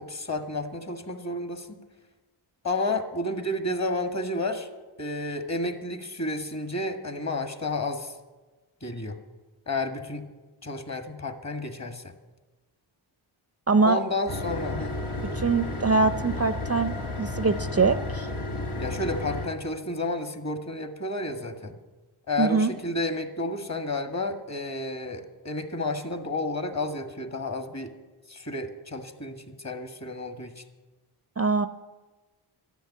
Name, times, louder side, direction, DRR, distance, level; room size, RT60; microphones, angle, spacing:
voice 1, 0.0-1.8 2.6-4.7 5.0-8.2 8.8-9.2 9.7-10.3 10.6-12.1 13.8-15.0 18.8-21.8 22.3-27.9 28.3-30.6, left 2 dB, 35° left, 7 dB, 1.8 m, -31 dB
voice 2, 13.7-14.0 15.4-18.3 22.4-22.7 31.4-31.7, right 4 dB, 30° right, 11 dB, 0.5 m, -23 dB
sound 1, 14.3-19.5, left 2 dB, 80° left, 2.0 m, -32 dB
13.0 x 10.5 x 8.4 m, 1.2 s
cardioid pair, 65°, 49 cm